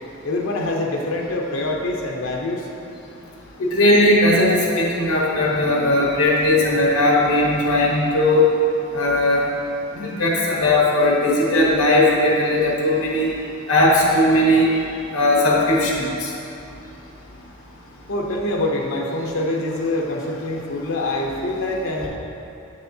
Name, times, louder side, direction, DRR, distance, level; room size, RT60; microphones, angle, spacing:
voice 1, 0.2-2.7 18.1-22.1, left 2 dB, 65° left, 0 dB, 0.7 m, -25 dB
voice 2, 3.6-8.5 8.9-9.4 9.9-13.3 13.7-14.7 15.1-16.3, left 1 dB, 90° left, -3 dB, 1.1 m, -18 dB
7.2 x 6.8 x 2.7 m, 2.7 s
head